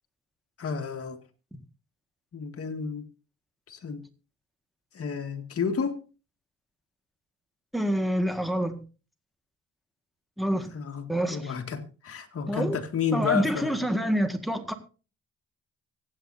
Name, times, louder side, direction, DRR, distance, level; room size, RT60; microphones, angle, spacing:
voice 1, 0.6-1.2 2.3-3.1 3.7-4.1 4.9-6.0 10.5-13.8, left 6 dB, 50° left, 2.1 m, -31 dB
voice 2, 7.7-8.8 10.4-10.7 11.1-11.5 12.5-12.8 13.1-14.7, equal, ahead, 1.8 m, -27 dB
24.5 x 8.9 x 2.7 m
cardioid pair, 90°, 30 cm